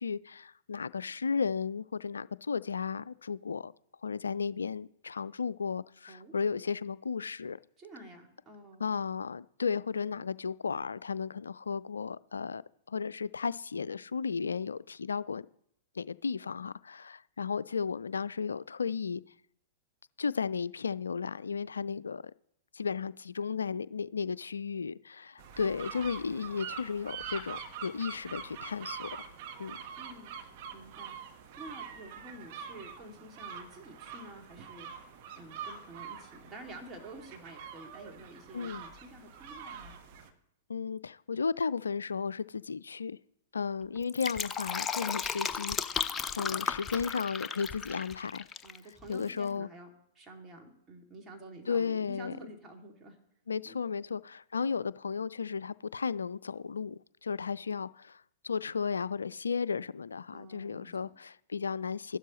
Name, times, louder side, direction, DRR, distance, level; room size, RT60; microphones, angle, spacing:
voice 1, 0.0-3.7 4.0-7.6 8.8-12.6 12.9-15.4 16.0-19.2 20.2-22.3 22.7-29.1 29.6-29.8 38.5-38.8 40.7-43.2 43.5-46.1 46.4-48.5 49.1-49.7 51.7-52.3 53.5-58.2 58.4-62.2, left 5 dB, 80° left, 0.3 m, -34 dB
voice 2, 7.8-8.8 30.0-30.3 30.7-31.2 31.6-34.9 35.4-40.0 48.6-53.2 53.6-53.8 60.3-61.1, right 1 dB, 20° right, 2.4 m, -49 dB
sound 1, 25.4-40.3, right 7 dB, 45° right, 1.3 m, -45 dB
Fill (with liquid), 44.0-48.8 49.0-49.1, left 6 dB, 20° left, 0.5 m, -35 dB
13.0 x 12.0 x 3.1 m
figure-of-eight pair, 105°, 0 cm